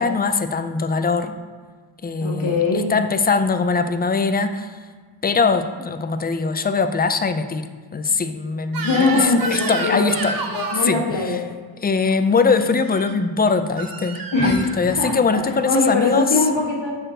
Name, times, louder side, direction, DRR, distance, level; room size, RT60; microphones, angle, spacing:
voice 1, 0.0-1.4 2.0-2.6 2.9-4.8 5.2-7.7 7.9-10.4 10.8-11.0 11.3-11.4 11.8-16.3, left 4 dB, 25° left, 9 dB, 0.3 m, -21 dB
voice 2, 2.2-2.8 8.8-10.2 10.4-11.5 14.3-14.6 14.9-16.9, left 3 dB, 70° left, -3 dB, 1.7 m, -21 dB
Crying sobbing / Screech, 8.7-10.9 12.8-13.1 13.8-14.7, right 3 dB, 50° right, 0.6 m, -29 dB
6.4 x 4.4 x 3.8 m, 1.5 s
wide cardioid pair, 85°, 47 cm